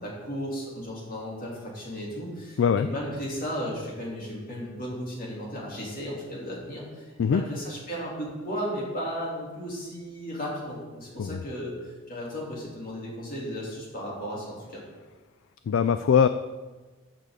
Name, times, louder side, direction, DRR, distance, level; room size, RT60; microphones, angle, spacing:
voice 1, 0.0-14.8, equal, 45° left, -4 dB, 3.0 m, -35 dB
voice 2, 15.7-16.3, left 7 dB, 70° left, 12 dB, 0.3 m, -21 dB
13.5 x 6.6 x 3.8 m, 1.3 s
head